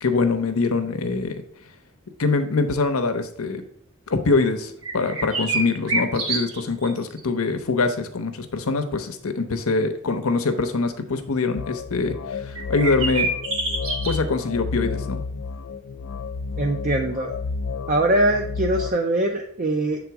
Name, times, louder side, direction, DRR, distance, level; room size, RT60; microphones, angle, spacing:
voice 1, 0.0-1.4 2.2-3.6 4.1-13.3 14.0-15.2, left 3 dB, 85° left, 7 dB, 0.8 m, -24 dB
sound 1, 4.8-6.9 7.2-7.3 12.6-14.2, right 3 dB, 70° right, 1.4 m, -26 dB
sound 2, 11.6-18.9, left 4 dB, 65° left, 0.4 m, -31 dB
voice 2, 16.6-17.3 17.9-20.0, right 1 dB, 40° right, 2 dB, 0.5 m, -22 dB
7.1 x 3.7 x 4.7 m, 0.64 s
head